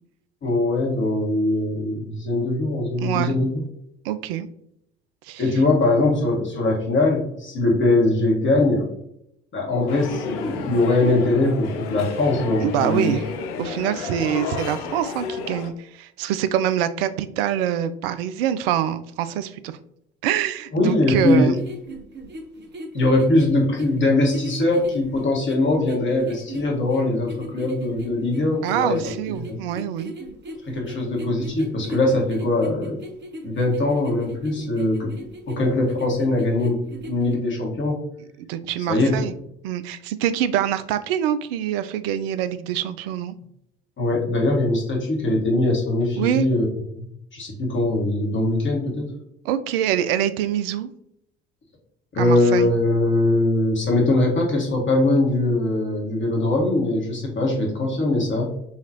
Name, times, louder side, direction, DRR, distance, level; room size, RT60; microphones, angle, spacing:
voice 1, 0.4-3.6 5.4-8.9 9.5-13.1 20.7-21.5 22.9-29.0 29.3-29.6 30.6-33.0 33.4-35.1 35.5-36.8 37.1-38.0 38.9-39.3 44.0-46.6 46.9-47.1 47.3-49.1 52.1-58.5, left 2 dB, 40° left, -1 dB, 1.7 m, -21 dB
voice 2, 3.0-3.3 4.0-4.5 5.3-5.4 12.6-13.2 13.6-19.8 20.2-21.5 28.6-30.1 38.5-39.3 39.6-43.3 46.2-46.4 49.4-50.9 52.2-52.7, right 10 dB, 70° right, 13 dB, 0.5 m, -25 dB
sound 1, 9.9-15.7, left 5 dB, 70° left, 0.6 m, -32 dB
sound 2, 20.9-37.4, right 1 dB, 35° right, 1.1 m, -38 dB
5.6 x 2.9 x 2.9 m, 0.75 s
hypercardioid pair, 55°, 31 cm